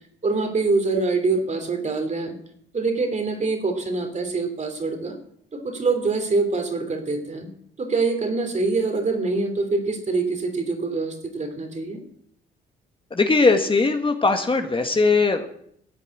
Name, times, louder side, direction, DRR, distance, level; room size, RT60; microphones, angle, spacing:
voice 1, 0.2-2.3 2.7-5.2 5.5-7.5 7.8-12.0, right 3 dB, 35° right, 6 dB, 3.2 m, -24 dB
voice 2, 13.1-15.5, left 3 dB, 25° left, 5 dB, 1.7 m, -19 dB
14.0 x 8.3 x 8.5 m, 0.67 s
cardioid pair, 90°, 20 cm